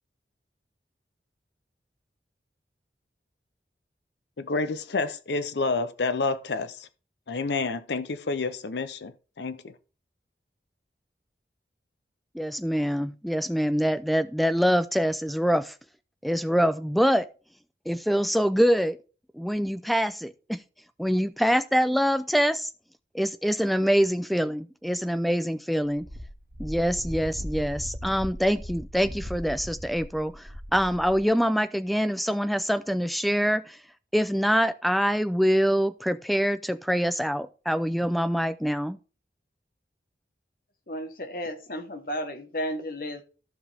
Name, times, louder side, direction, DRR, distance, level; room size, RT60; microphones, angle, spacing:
voice 1, 4.4-6.9 7.3-9.7, left 3 dB, 85° left, 0.7 m, -29 dB
voice 2, 12.3-15.7 16.2-17.3 17.9-19.0 19.3-20.6 21.0-22.7 23.1-26.1 26.6-33.8 34.1-39.0, equal, ahead, 0.4 m, -25 dB
Wind, 26.0-31.3, equal, 55° right, 1.9 m, -38 dB
voice 3, 40.9-43.2, equal, 55° left, 1.3 m, -33 dB
14.5 x 5.1 x 3.5 m
head